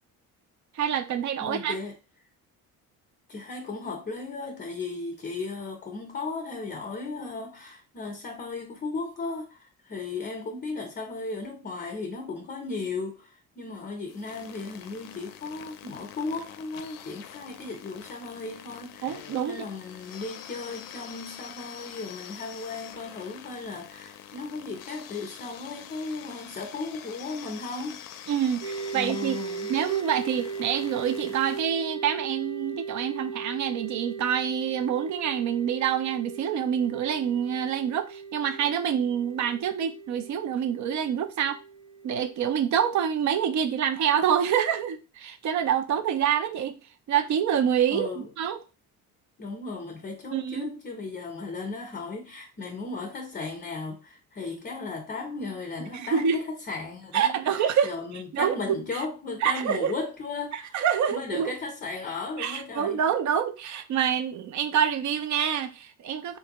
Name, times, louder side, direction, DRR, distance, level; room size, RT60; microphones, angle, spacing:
voice 1, 0.7-1.8 19.0-19.6 28.3-29.4 29.7-41.6 42.0-46.8 47.1-48.6 50.3-50.7 55.9-56.4 57.1-59.0 59.4-59.9 60.5-61.5 62.4-66.4, right 8 dB, 50° right, 0.5 m, -27 dB
voice 2, 1.4-2.0 3.3-28.0 28.9-29.7 47.9-48.3 49.4-60.7 61.1-63.0, left 3 dB, 25° left, 0.7 m, -36 dB
sound 1, 14.1-31.6, left 10 dB, 65° left, 0.5 m, -45 dB
sound 2, 28.6-42.5, right 5 dB, 70° right, 1.1 m, -38 dB
3.3 x 2.6 x 2.9 m
cardioid pair, 100°, 37 cm